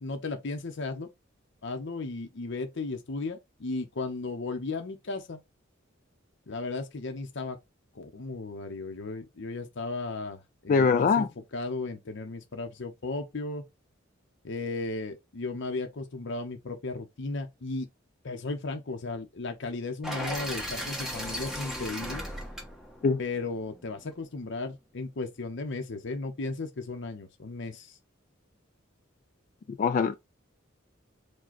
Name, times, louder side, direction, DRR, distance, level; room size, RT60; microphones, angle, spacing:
voice 1, 0.0-1.1 1.6-5.4 6.5-7.6 7.9-11.3 11.5-13.6 14.4-17.9 18.2-22.2 23.2-28.0, left 3 dB, 65° left, 0.7 m, -35 dB
voice 2, 10.7-11.3 23.0-23.2 29.8-30.2, left 5 dB, 40° left, 0.3 m, -22 dB
sound 1, 20.0-24.1, equal, ahead, 1.1 m, -37 dB
4.9 x 2.2 x 4.0 m
head